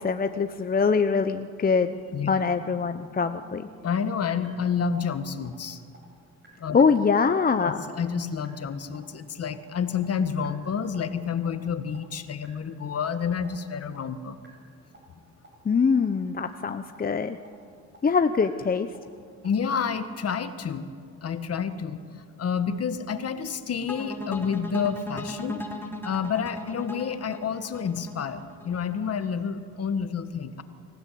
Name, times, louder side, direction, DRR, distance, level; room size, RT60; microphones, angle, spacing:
voice 1, 0.0-2.0 2.3-3.7 6.7-7.8 15.6-17.4 18.0-18.9, left 5 dB, 30° left, 8 dB, 0.9 m, -23 dB
voice 2, 3.8-5.8 6.6-6.8 7.6-14.4 19.4-20.9 21.2-25.7 26.0-30.6, left 6 dB, 55° left, 10 dB, 1.7 m, -29 dB
sound 1, 4.9-5.0 5.4-5.5 5.9-6.0 6.4-6.5 6.9-7.0 7.4-7.5 7.9-8.0 8.4-8.5 8.9-9.0 9.4-9.5 9.9-10.0 10.4-10.5 10.9-11.0 11.4-11.5 11.9-12.0 12.4-12.5 12.9-13.0 13.4-13.5 13.9-14.0 14.4-14.5 14.9-15.0 15.4-15.5 15.9-16.0 16.4-16.5 16.9-17.0 17.4-17.5 17.9-18.0 18.4-18.5 18.9-19.0 19.4-19.5 19.9-20.0, right 3 dB, 40° right, 7.4 m, -52 dB
sound 2, 23.9-29.0, left 1 dB, 5° left, 3.7 m, -37 dB
26.0 x 16.0 x 8.6 m, 2.1 s
cardioid pair, 90°, 30 cm